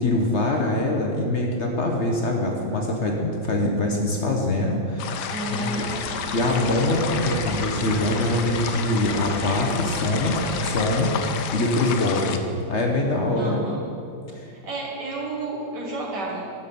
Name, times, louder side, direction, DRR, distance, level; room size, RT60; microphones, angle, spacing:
voice 1, 0.0-5.8 6.3-12.4 12.7-13.6 14.3-14.5, left 1 dB, 45° left, 1 dB, 1.0 m, -24 dB
sound 1, 5.0-12.4, left 7 dB, 70° left, 1.2 m, -31 dB
voice 2, 5.3-6.2 13.4-13.9 14.5-16.6, right 2 dB, 65° right, -2 dB, 1.7 m, -31 dB
sound 2, 5.7-11.1, right 3 dB, 80° right, 1.6 m, -36 dB
11.0 x 5.7 x 6.8 m, 2.6 s
omnidirectional pair, 2.1 m